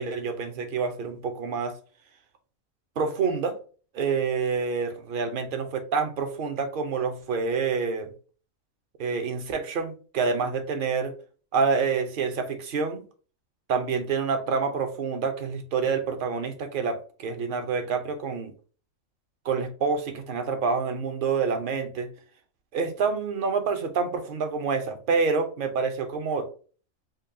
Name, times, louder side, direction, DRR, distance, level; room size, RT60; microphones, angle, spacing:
voice 1, 0.0-1.8 3.0-3.6 3.9-8.1 9.0-11.1 11.5-13.0 13.7-18.5 19.4-22.1 22.7-26.5, right 5 dB, 50° right, 0.7 m, -27 dB
5.2 x 2.3 x 2.6 m
omnidirectional pair, 1.4 m